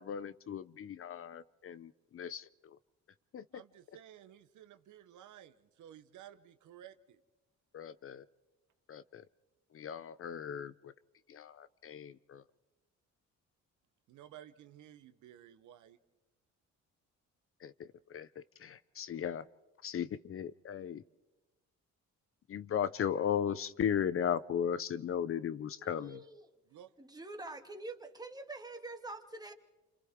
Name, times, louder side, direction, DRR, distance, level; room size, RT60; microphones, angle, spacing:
voice 1, 0.0-2.8 3.3-3.6 7.7-8.2 8.9-9.2 9.7-10.9 11.8-12.4 17.6-19.4 19.8-21.0 22.5-26.2, left 8 dB, 45° left, 16 dB, 0.6 m, -36 dB
voice 2, 3.5-7.2 14.1-16.0 26.7-26.9, right 11 dB, 80° right, 11 dB, 1.0 m, -55 dB
voice 3, 25.8-26.5 27.0-29.5, right 2 dB, 15° right, 5 dB, 1.9 m, -46 dB
29.0 x 26.5 x 3.6 m, 1.0 s
cardioid pair, 90°, 30 cm